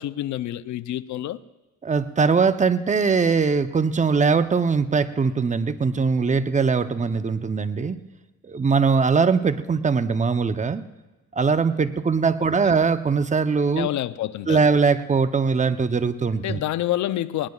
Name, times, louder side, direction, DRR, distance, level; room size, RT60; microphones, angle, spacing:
voice 1, 0.0-1.4 13.7-14.6 16.4-17.5, left 13 dB, 70° left, 0.6 m, -27 dB
voice 2, 1.8-8.0 8.5-10.8 11.3-13.9 14.5-16.6, right 5 dB, 25° right, 0.7 m, -21 dB
20.0 x 19.0 x 2.4 m
cardioid pair, 90°, 30 cm